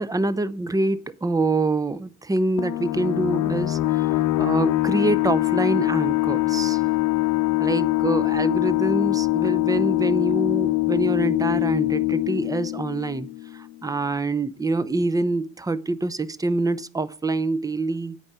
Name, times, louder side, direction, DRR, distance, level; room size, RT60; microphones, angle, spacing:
voice 1, 0.0-6.8 7.6-18.2, right 2 dB, 10° right, 0.6 m, -25 dB
sound 1, 2.6-13.9, left 19 dB, 80° left, 0.7 m, -23 dB
8.8 x 4.9 x 6.7 m
cardioid pair, 90°, 30 cm